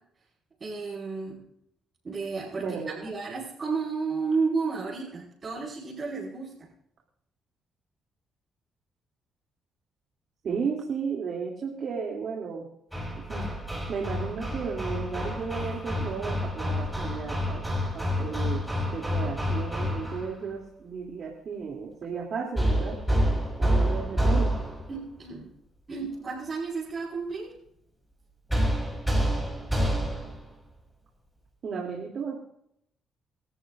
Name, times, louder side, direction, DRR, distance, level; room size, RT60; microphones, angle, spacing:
voice 1, 0.6-1.4 2.0-2.6 3.0-6.7 24.9-25.5 25.9-27.5, right 4 dB, 35° right, -7 dB, 5.5 m, -32 dB
voice 2, 2.6-3.1 10.4-12.6 13.3-13.5 13.9-17.6 17.9-18.6 18.9-23.0 23.6-24.6 31.6-32.4, right 5 dB, 60° right, -2 dB, 3.0 m, -34 dB
Hammer, 12.9-20.3 22.6-25.0 28.5-30.4, equal, 5° right, 6.1 m, -28 dB
29.0 x 13.5 x 2.6 m, 0.75 s
cardioid pair, 90°, 0 cm